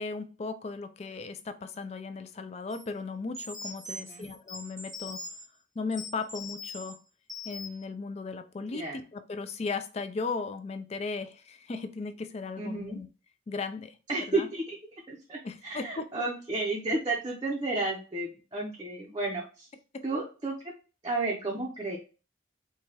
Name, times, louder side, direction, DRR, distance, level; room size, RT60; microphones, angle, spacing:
voice 1, 0.0-5.3 5.8-7.0 7.4-13.1 13.5-14.0 14.3-14.5 15.4-16.0 19.9-20.0, left 4 dB, 30° left, 0.3 m, -36 dB
sound 1, 2.7-2.8 3.3-5.4 5.9-6.9 7.3-7.8, left 2 dB, ahead, 0.9 m, -41 dB
voice 2, 3.9-4.3 8.7-9.0 12.6-13.0 14.1-14.8 15.1-19.7 20.0-20.7 21.0-22.0, right 2 dB, 25° right, 0.6 m, -32 dB
4.7 x 2.2 x 2.8 m
head